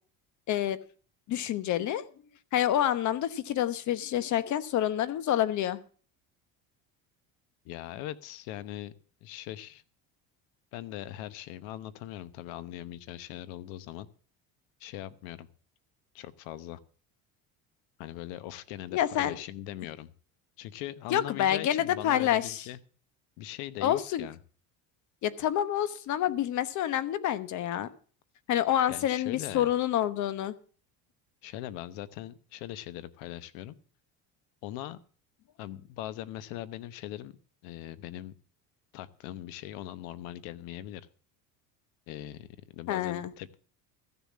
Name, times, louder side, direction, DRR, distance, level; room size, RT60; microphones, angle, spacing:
voice 1, 0.5-0.8 1.3-2.0 2.5-5.8 18.9-19.3 21.1-22.6 23.8-24.3 25.2-27.9 28.5-30.5 42.9-43.3, left 11 dB, 55° left, 15 dB, 1.1 m, -28 dB
voice 2, 7.6-8.9 9.2-9.8 10.7-14.1 14.8-15.5 16.1-16.8 18.0-20.1 20.6-22.8 23.4-24.4 28.9-29.7 31.4-33.7 34.6-35.0 35.6-38.3 38.9-41.1 42.1-43.6, left 13 dB, 80° left, 16 dB, 1.0 m, -40 dB
14.5 x 7.0 x 7.4 m, 0.43 s
cardioid pair, 120°, 36 cm